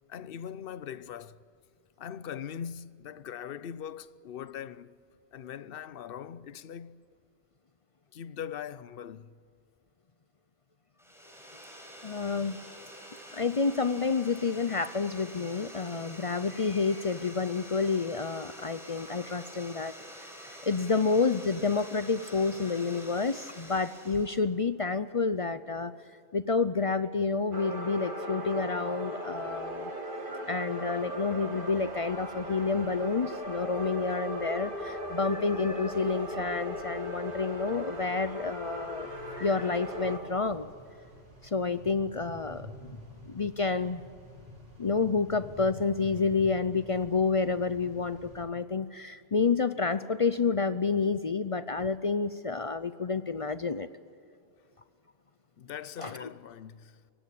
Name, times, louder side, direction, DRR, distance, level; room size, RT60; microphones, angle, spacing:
voice 1, 0.1-1.4 2.0-5.0 5.3-7.0 8.1-9.4 55.6-57.0, left 8 dB, 60° left, 0.8 m, -41 dB
sound 1, 11.0-24.4, equal, ahead, 5.9 m, -47 dB
voice 2, 12.0-12.6 13.3-19.9 20.6-25.9 26.3-29.9 30.5-40.7 41.4-42.7 43.3-44.0 44.8-53.9 56.0-56.1, left 4 dB, 40° left, 0.5 m, -29 dB
sound 2, 27.5-40.2, equal, 45° right, 2.5 m, -38 dB
sound 3, 31.6-48.4, equal, 90° right, 5.8 m, -51 dB
24.0 x 18.0 x 8.7 m
omnidirectional pair, 1.2 m